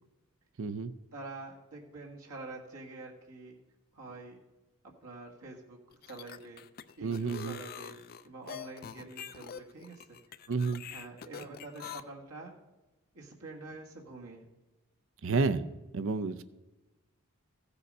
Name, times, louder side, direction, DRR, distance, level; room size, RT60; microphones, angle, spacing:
voice 1, 0.6-0.9 7.0-7.6 10.5-10.8 15.2-15.6 15.9-16.4, right 4 dB, 60° right, 13 dB, 0.5 m, -30 dB
voice 2, 1.1-3.6 3.9-4.4 4.8-5.8 6.0-6.6 7.0-10.2 10.9-12.6 13.1-14.5, right 2 dB, 80° right, -1 dB, 1.7 m, -46 dB
sound 1, 5.9-12.0, left 7 dB, 40° left, 0.4 m, -45 dB
15.0 x 6.8 x 5.3 m, 1.1 s
head